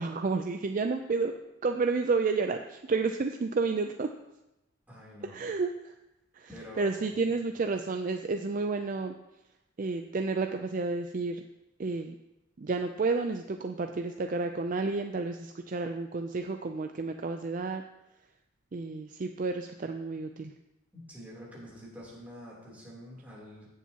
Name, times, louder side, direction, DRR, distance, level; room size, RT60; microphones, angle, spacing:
voice 1, 0.0-4.1 5.2-5.9 6.4-6.5 6.8-9.1 9.8-11.4 11.8-12.1 12.6-17.8 18.7-20.5, right 4 dB, 45° right, 6 dB, 0.4 m, -31 dB
voice 2, 4.9-5.4 6.5-7.0 20.9-23.7, equal, 10° right, -6 dB, 3.2 m, -47 dB
16.0 x 7.3 x 2.9 m, 0.92 s
head